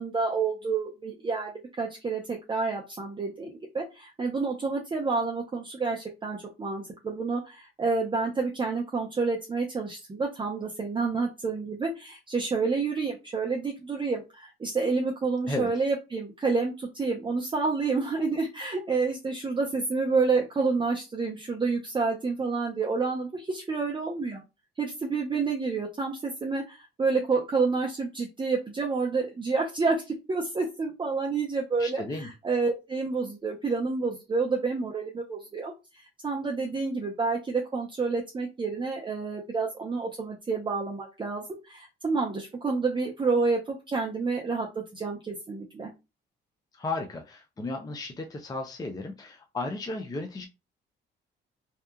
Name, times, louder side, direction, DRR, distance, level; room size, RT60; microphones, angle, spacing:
voice 1, 0.0-1.5 1.8-24.4 24.8-45.9, right 4 dB, 25° right, 0 dB, 0.6 m, -29 dB
voice 2, 31.8-32.3 46.7-50.5, left 2 dB, 20° left, 4 dB, 0.5 m, -34 dB
2.8 x 2.3 x 2.2 m, 0.25 s
cardioid pair, 90°, 20 cm